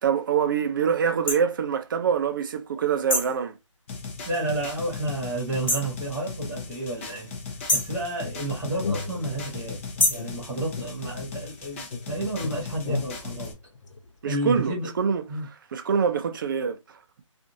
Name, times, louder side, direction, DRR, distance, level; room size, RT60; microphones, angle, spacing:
voice 1, 0.0-3.6 14.2-17.0, right 7 dB, 40° right, 0.4 m, -25 dB
sound 1, 1.3-1.4 3.1-3.4 5.7-6.0 7.7-8.0 10.0-10.3, left 1 dB, 80° left, 1.5 m, -24 dB
sound 2, 3.9-13.5, left 4 dB, 25° left, 0.5 m, -38 dB
voice 2, 4.2-7.3 7.7-13.5 14.2-14.9 15.3-15.5, right 2 dB, 10° right, 1.1 m, -31 dB
sound 3, 8.2-9.7 10.2-11.6 11.9-14.4, left 4 dB, 60° left, 0.8 m, -35 dB
2.6 x 2.5 x 2.7 m
figure-of-eight pair, 155°, 17 cm